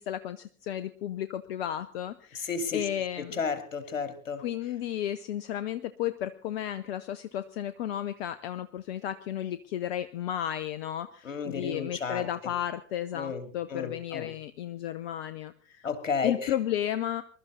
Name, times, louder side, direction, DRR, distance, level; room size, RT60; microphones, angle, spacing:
voice 1, 0.0-3.4 4.4-15.9 16.2-17.2, left 11 dB, 50° left, 13 dB, 0.9 m, -33 dB
voice 2, 2.4-2.9 3.3-4.4 11.2-12.3 13.2-14.3 15.8-16.5, left 5 dB, 75° left, 10 dB, 2.5 m, -32 dB
21.5 x 12.5 x 4.0 m, 0.40 s
figure-of-eight pair, 90°, 39 cm